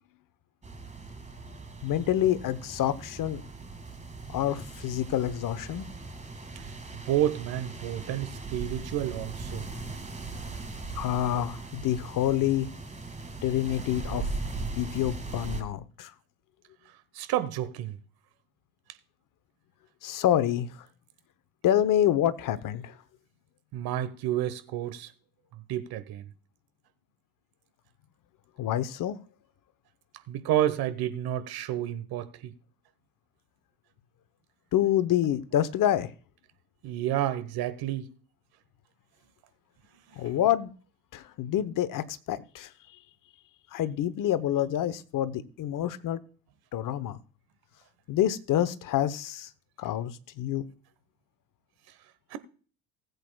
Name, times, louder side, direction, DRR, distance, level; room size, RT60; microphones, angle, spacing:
sound 1, 0.6-15.6, right 3 dB, 15° right, 2.1 m, -39 dB
voice 1, 1.8-3.4 4.3-5.9 11.0-12.7 13.4-14.2 14.8-16.1 20.0-20.7 21.6-22.8 28.6-29.2 34.7-36.1 40.2-40.7 41.1-42.7 43.7-46.2 46.7-47.2 48.1-49.5 49.8-50.1 50.4-50.6, left 11 dB, 45° left, 0.9 m, -27 dB
voice 2, 7.1-9.7 17.2-18.0 23.7-25.1 25.7-26.2 30.3-32.5 36.8-38.1 52.3-52.4, right 12 dB, 50° right, 1.2 m, -30 dB
19.5 x 8.1 x 2.3 m
hypercardioid pair, 65°, 47 cm